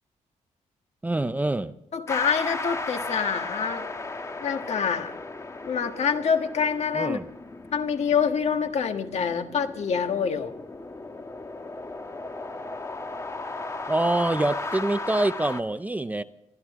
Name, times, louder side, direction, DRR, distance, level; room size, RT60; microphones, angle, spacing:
voice 1, 1.0-1.7 7.0-7.2 13.9-16.2, right 2 dB, 10° right, 0.6 m, -25 dB
voice 2, 1.9-3.9 4.4-5.2 5.6-7.2 7.7-10.5, left 6 dB, 60° left, 1.5 m, -26 dB
sound 1, 2.1-15.6, left 3 dB, 25° left, 1.3 m, -36 dB
23.0 x 14.0 x 3.7 m
wide cardioid pair, 135°, 13 cm